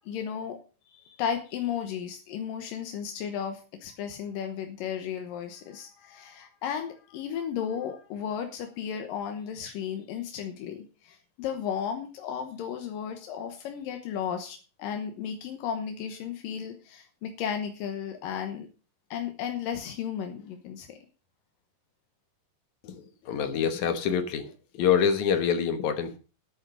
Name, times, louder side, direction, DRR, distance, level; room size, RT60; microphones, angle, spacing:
voice 1, 0.0-0.6 0.9-18.7 19.1-21.0, left 8 dB, 90° left, 5 dB, 2.8 m, -34 dB
voice 2, 22.8-26.2, left 7 dB, 65° left, 9 dB, 2.4 m, -26 dB
9.6 x 9.5 x 6.4 m, 0.35 s
omnidirectional pair, 3.8 m